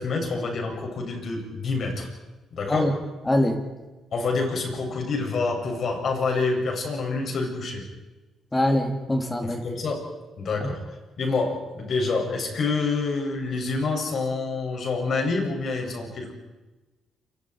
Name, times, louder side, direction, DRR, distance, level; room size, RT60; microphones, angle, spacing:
voice 1, 0.0-2.1 2.5-2.9 4.1-7.8 9.4-10.0 10.4-10.8 11.2-16.3, left 3 dB, 55° left, 2 dB, 7.6 m, -27 dB
voice 2, 3.3-3.6 8.5-9.6, left 1 dB, 15° left, 4 dB, 3.0 m, -23 dB
28.5 x 24.5 x 4.9 m, 1.1 s
cardioid pair, 90°, 0 cm